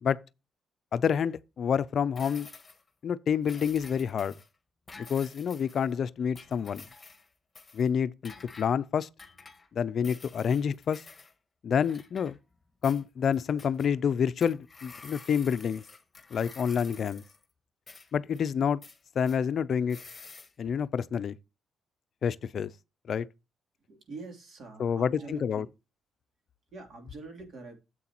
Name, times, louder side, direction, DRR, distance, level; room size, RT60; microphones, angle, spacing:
voice 1, 0.9-2.5 3.0-4.3 5.0-6.9 7.7-9.1 9.7-11.0 11.6-12.4 12.8-15.8 16.3-17.2 18.1-18.8 19.2-20.0 20.6-21.4 22.2-22.7 23.1-23.3 24.8-25.6, left 7 dB, 55° left, 0.4 m, -28 dB
sound 1, 2.2-2.9 3.4-4.5 4.9-5.9 6.3-7.3 7.6-7.9 8.2-8.7 9.2-9.7 10.0-11.3 11.8-12.6 12.8-13.9 14.4-17.4 17.9-18.4 18.8-19.4 19.9-20.5, left 4 dB, 25° left, 1.5 m, -50 dB
voice 2, 23.9-25.7 26.7-27.8, right 3 dB, 55° right, 3.2 m, -44 dB
9.7 x 7.7 x 2.9 m
cardioid pair, 90°, 0 cm